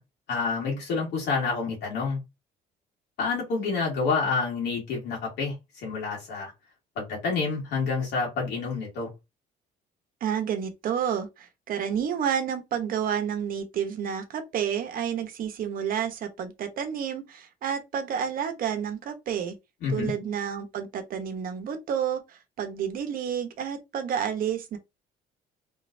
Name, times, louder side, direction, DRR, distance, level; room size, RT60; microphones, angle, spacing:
voice 1, 0.3-2.2 3.2-6.5 7.0-9.1 19.8-20.1, left 4 dB, 80° left, 2.4 m, -28 dB
voice 2, 10.2-19.5 19.9-24.8, right 8 dB, 60° right, 0.9 m, -30 dB
3.9 x 3.2 x 2.6 m
cardioid pair, 110°, 17 cm